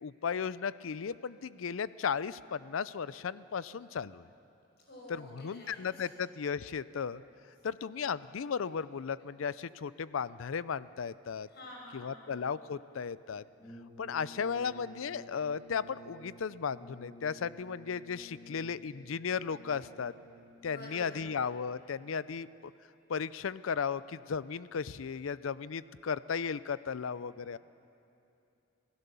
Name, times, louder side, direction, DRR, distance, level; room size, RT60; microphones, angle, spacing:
voice 1, 0.0-4.3 5.1-7.2 7.6-11.5 11.9-13.4 14.0-20.1 20.6-22.5 23.1-27.6, left 6 dB, 85° left, 17 dB, 0.5 m, -35 dB
voice 2, 4.8-5.9 11.5-12.3 20.6-21.3, left 1 dB, 55° left, -2 dB, 6.0 m, -49 dB
Brass instrument, 13.6-20.7, right 1 dB, 25° left, 2.1 m, -53 dB
26.5 x 16.0 x 6.9 m, 2.7 s
head